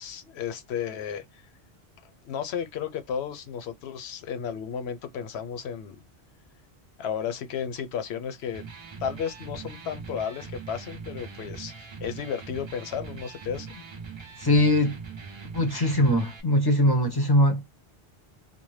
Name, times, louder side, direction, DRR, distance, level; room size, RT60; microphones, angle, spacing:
voice 1, 0.0-1.4 2.2-6.0 7.0-8.6 9.0-13.8, left 8 dB, 80° left, 0.8 m, -33 dB
Electric guitar, 8.4-16.4, right 5 dB, 40° right, 0.4 m, -41 dB
voice 2, 14.4-15.0 15.5-17.7, left 1 dB, 25° left, 0.7 m, -21 dB
2.6 x 2.1 x 3.1 m
omnidirectional pair, 1.1 m